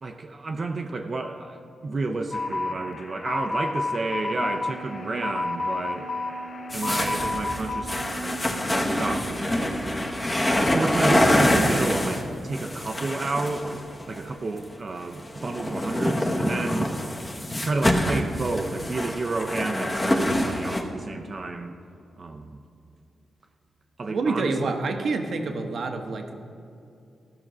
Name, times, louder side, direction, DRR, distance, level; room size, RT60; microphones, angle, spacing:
voice 1, 0.0-6.1 6.7-8.4 8.6-9.6 10.7-16.9 17.6-21.8 22.2-22.6 24.0-24.8, right 3 dB, 40° right, 4 dB, 0.5 m, -31 dB
sound 1, 2.3-7.8, left 3 dB, 35° left, 0.6 m, -31 dB
Wind instrument woodwind instrument, 4.1-9.3, right 2 dB, 60° left, 1.8 m, -40 dB
sound 2, 6.7-14.2 15.1-20.8, left 1 dB, 20° left, 1.0 m, -25 dB
voice 2, 24.1-26.4, right 3 dB, 65° right, 5 dB, 0.9 m, -27 dB
14.0 x 6.0 x 6.0 m, 2.6 s
cardioid pair, 105°, 0 cm